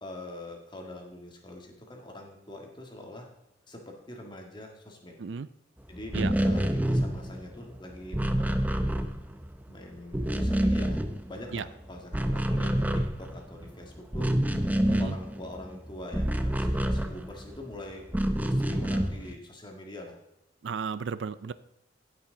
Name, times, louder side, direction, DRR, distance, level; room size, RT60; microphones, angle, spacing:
voice 1, 0.0-3.3 3.7-5.2 5.9-8.9 9.7-11.0 11.3-14.5 15.0-18.1 18.4-20.2, left 1 dB, 25° left, 2 dB, 1.7 m, -44 dB
sound 1, 6.0-9.7 10.0-11.7 12.0-17.6 18.1-19.3, right 1 dB, 10° right, 0.6 m, -28 dB
voice 2, 14.9-15.2 20.6-21.5, right 5 dB, 70° right, 15 dB, 0.4 m, -33 dB
16.0 x 5.9 x 3.8 m, 0.86 s
head